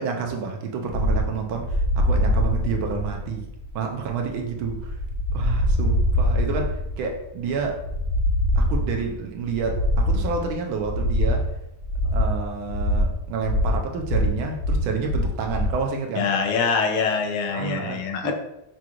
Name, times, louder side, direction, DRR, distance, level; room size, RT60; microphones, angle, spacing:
voice 1, 0.0-3.5 3.7-5.0 5.3-7.8 8.6-11.5 12.1-16.3 17.5-18.3, right 5 dB, 80° right, 3 dB, 1.4 m, -29 dB
sound 1, 0.9-15.8, left 1 dB, 40° left, 0.6 m, -24 dB
voice 2, 16.2-18.3, left 5 dB, 85° left, 4 dB, 1.5 m, -24 dB
6.1 x 2.4 x 2.9 m, 0.85 s
omnidirectional pair, 2.3 m